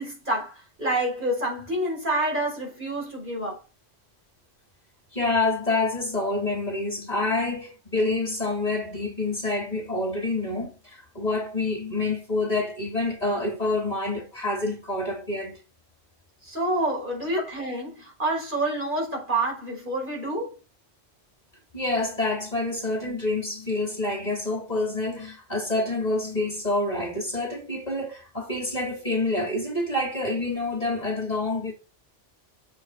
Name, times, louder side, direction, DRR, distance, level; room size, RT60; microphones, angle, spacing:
voice 1, 0.0-3.6 16.4-20.6, right 1 dB, 45° right, 5.4 m, -28 dB
voice 2, 5.1-15.5 21.7-31.7, left 2 dB, 35° left, 2.9 m, -27 dB
7.4 x 6.4 x 4.6 m
omnidirectional pair, 1.2 m